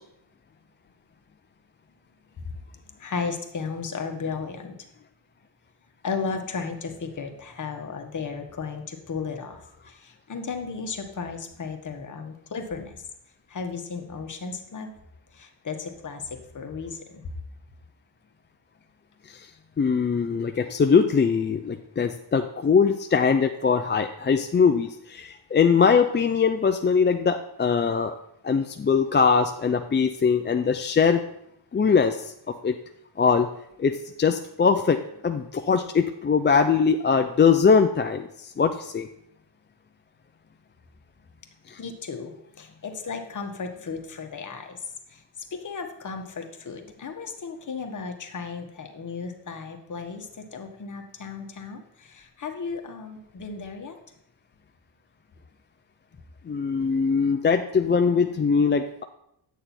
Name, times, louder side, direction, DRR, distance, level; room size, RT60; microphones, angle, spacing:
voice 1, 3.0-5.0 6.0-13.1 13.5-14.9 15.3-17.3 41.8-45.2 45.5-54.0, left 5 dB, 45° left, 4 dB, 1.4 m, -35 dB
voice 2, 19.8-28.1 28.4-31.2 31.7-32.3 32.6-32.8 33.2-33.5 33.8-39.1 41.7-41.8 56.5-59.0, left 5 dB, 25° left, 6 dB, 0.5 m, -22 dB
9.3 x 6.6 x 4.3 m, 0.76 s
cardioid pair, 85°, 44 cm